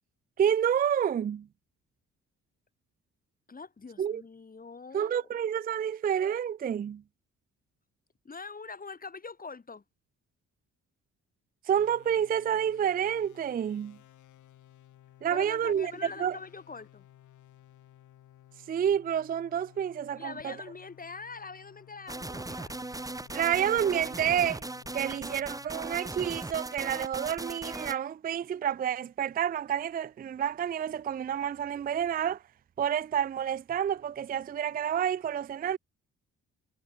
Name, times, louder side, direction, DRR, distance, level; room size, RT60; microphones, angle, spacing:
voice 1, 0.4-1.5 4.0-4.2 4.9-7.0 11.7-14.0 15.2-15.9 16.2-16.4 18.7-20.5 23.3-24.6 24.9-32.4 32.8-35.8, right 9 dB, 30° right, 0.4 m, -29 dB
voice 2, 3.5-5.3 8.2-9.8 15.3-17.1 20.1-22.7, left 4 dB, 30° left, 3.6 m, -44 dB
sound 1, 11.7-26.2, left 12 dB, 75° left, 5.1 m, -57 dB
sound 2, 22.1-28.0, right 2 dB, 10° right, 1.8 m, -38 dB
cardioid pair, 90°, 30 cm